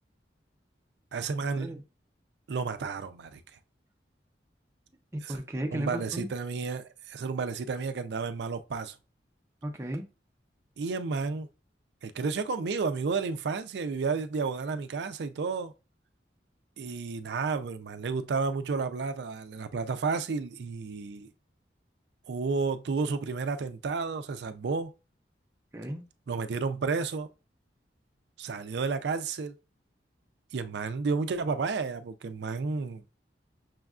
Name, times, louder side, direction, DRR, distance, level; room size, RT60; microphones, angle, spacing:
voice 1, 1.1-1.8 2.5-3.4 5.2-5.4 5.7-9.0 10.8-11.5 12.0-15.7 16.8-21.3 22.3-24.9 26.3-27.3 28.4-29.6 30.5-33.0, right 4 dB, 70° right, 0.4 m, -31 dB
voice 2, 5.1-6.3 9.6-10.0 25.7-26.0, right 1 dB, 15° right, 0.5 m, -34 dB
6.1 x 2.3 x 2.4 m
head